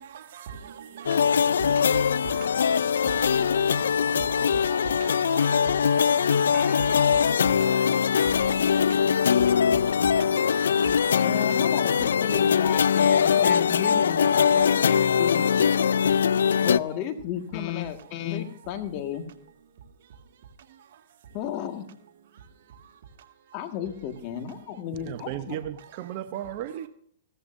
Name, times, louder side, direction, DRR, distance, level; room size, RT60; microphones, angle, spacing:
voice 1, 0.0-2.7 3.1-11.6, right 7 dB, 65° right, 2.0 m, -41 dB
sound 1, 1.1-16.8, left 7 dB, 85° left, 0.4 m, -22 dB
sound 2, 6.5-9.0, right 1 dB, ahead, 3.7 m, -47 dB
voice 2, 11.2-15.4 16.6-19.2 21.3-21.8 23.5-25.6, left 9 dB, 40° left, 1.8 m, -33 dB
voice 3, 24.9-26.9, right 12 dB, 45° right, 0.8 m, -35 dB
16.5 x 13.5 x 2.7 m
hypercardioid pair, 135°, 0 cm